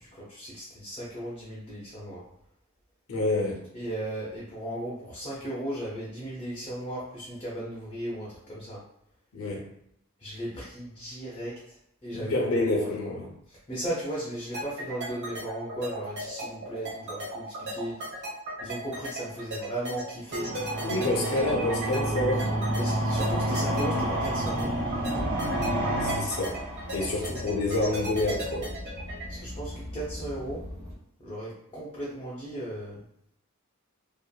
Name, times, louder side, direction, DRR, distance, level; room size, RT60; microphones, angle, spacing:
voice 1, 0.0-2.2 3.7-8.8 10.2-11.5 12.0-13.1 13.5-17.9 18.6-20.5 22.8-24.7 29.3-30.6 31.2-33.0, right 1 dB, 25° left, -7 dB, 0.5 m, -36 dB
voice 2, 3.1-3.6 9.3-9.7 12.1-13.3 20.8-22.5 26.0-26.6 26.9-28.7, left 2 dB, 70° left, -2 dB, 0.7 m, -28 dB
sound 1, 14.5-29.3, right 2 dB, 55° right, 1.0 m, -36 dB
sound 2, 20.3-27.3, right 1 dB, 75° right, 0.7 m, -29 dB
sound 3, 21.4-30.9, left 1 dB, 30° right, 0.7 m, -40 dB
2.7 x 2.4 x 2.2 m, 0.77 s
head